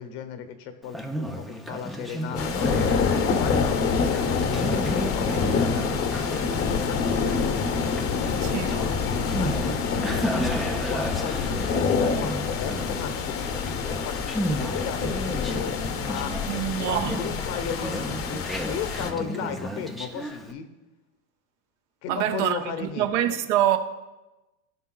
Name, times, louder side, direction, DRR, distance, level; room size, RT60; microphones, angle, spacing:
voice 1, 0.0-2.8 3.2-4.4 5.1-6.1 6.6-7.5 8.2-8.6 9.4-13.6 13.8-18.4 18.7-20.7 22.0-23.3, left 7 dB, 60° left, 1.1 m, -36 dB
Conversation, 0.8-20.5, equal, ahead, 0.4 m, -33 dB
sound 1, 2.4-19.1, left 5 dB, 35° left, 0.9 m, -26 dB
voice 2, 8.4-8.7 16.5-17.2 22.1-23.8, right 11 dB, 70° right, 0.9 m, -25 dB
15.5 x 5.5 x 2.3 m
supercardioid pair, 120°, 37 cm